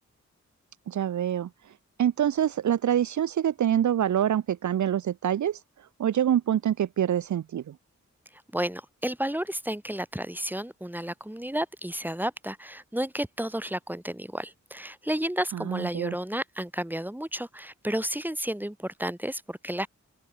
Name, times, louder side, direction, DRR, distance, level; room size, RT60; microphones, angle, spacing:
voice 1, 0.9-1.5 2.0-5.6 6.0-7.7 15.5-16.1, right 10 dB, 75° right, 0.5 m, -25 dB
voice 2, 8.5-19.9, right 1 dB, 5° right, 3.9 m, -32 dB
open air
wide cardioid pair, 90°, 29 cm